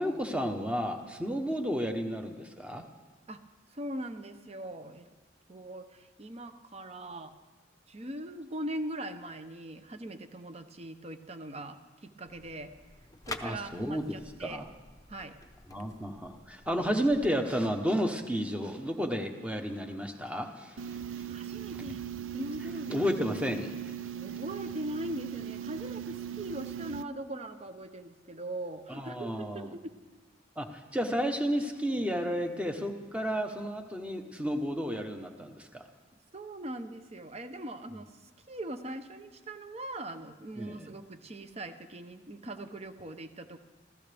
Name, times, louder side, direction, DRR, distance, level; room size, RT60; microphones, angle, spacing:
voice 1, 0.0-2.9 13.4-14.7 15.7-21.3 22.9-23.9 28.9-29.8 30.6-35.9 40.6-41.0, equal, 5° right, 4 dB, 1.0 m, -32 dB
voice 2, 3.7-5.1 5.5-7.3 7.9-12.7 13.3-14.6 15.1-15.4 21.3-22.0 22.3-22.9 24.1-29.8 36.3-38.1 38.5-43.6, right 1 dB, 30° right, 9 dB, 0.8 m, -41 dB
sound 1, 12.2-17.3, left 3 dB, 20° left, 0.7 m, -48 dB
sound 2, 20.8-27.0, right 9 dB, 90° right, 0.5 m, -39 dB
26.0 x 15.0 x 3.5 m, 1.3 s
head